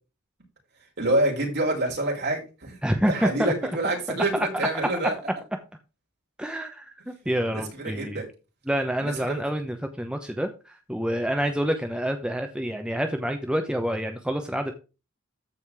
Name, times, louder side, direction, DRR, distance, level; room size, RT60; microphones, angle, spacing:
voice 1, 1.0-2.8 3.1-5.1 7.5-8.3 9.0-9.4, right 1 dB, 50° right, -1 dB, 5.7 m, -27 dB
voice 2, 2.8-3.7 4.3-4.5 6.4-8.2 8.7-14.7, equal, 5° right, 5 dB, 0.9 m, -27 dB
14.0 x 5.2 x 3.6 m, 0.31 s
head